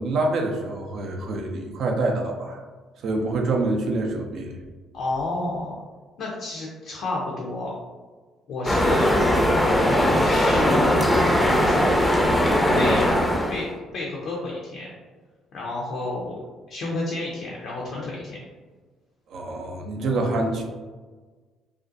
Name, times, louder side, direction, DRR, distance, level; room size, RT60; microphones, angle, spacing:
voice 1, 0.0-2.6 3.0-4.6 19.3-20.6, right 2 dB, 60° right, 2 dB, 0.4 m, -26 dB
voice 2, 4.9-5.8 6.2-7.7 8.5-9.1 9.8-11.2 11.6-11.9 12.8-13.1 13.5-13.7 13.9-14.9 15.5-16.4 16.7-18.4, left 2 dB, 65° left, -3 dB, 0.5 m, -30 dB
sound 1, 8.7-13.7, equal, 10° left, 0.5 m, -20 dB
2.5 x 2.1 x 2.5 m, 1.4 s
hypercardioid pair, 55°, 0 cm